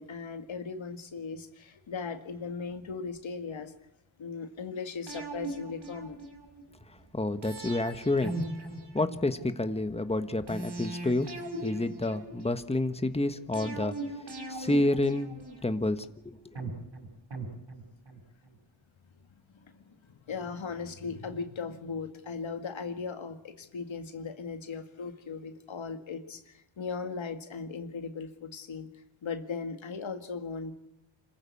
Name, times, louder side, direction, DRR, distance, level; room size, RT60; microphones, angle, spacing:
voice 1, 0.0-3.7 4.2-6.2 19.5-28.9 29.2-30.8, left 5 dB, 85° left, 7 dB, 2.0 m, -38 dB
sound 1, 5.1-6.6 7.4-9.6 10.5-12.7 13.5-15.9 16.6-18.2 18.5-18.6, right 2 dB, 60° right, 5.9 m, -39 dB
voice 2, 7.1-8.3 8.9-11.3 11.6-13.9 14.5-15.4 15.6-16.5, left 2 dB, 15° left, 9 dB, 1.3 m, -29 dB
26.5 x 15.0 x 8.5 m, 0.83 s
cardioid pair, 65°, 45 cm